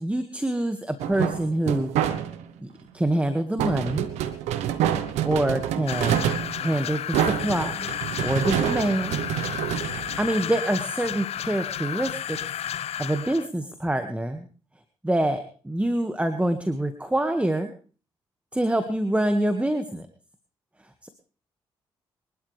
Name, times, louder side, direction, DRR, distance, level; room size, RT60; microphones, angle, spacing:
voice 1, 0.0-1.9 2.6-4.1 5.2-6.3 6.6-7.9 8.2-9.2 10.2-12.4 13.0-14.5 15.0-17.7 18.5-20.1 21.0-21.1, right 1 dB, 10° right, 8 dB, 1.8 m, -26 dB
sound 1, 1.0-2.6 3.6-10.7, right 10 dB, 85° right, 1.1 m, -27 dB
sound 2, 5.9-13.5, left 10 dB, 65° left, 0.7 m, -32 dB
24.0 x 12.0 x 3.4 m, 0.39 s
hypercardioid pair, 45°, 11 cm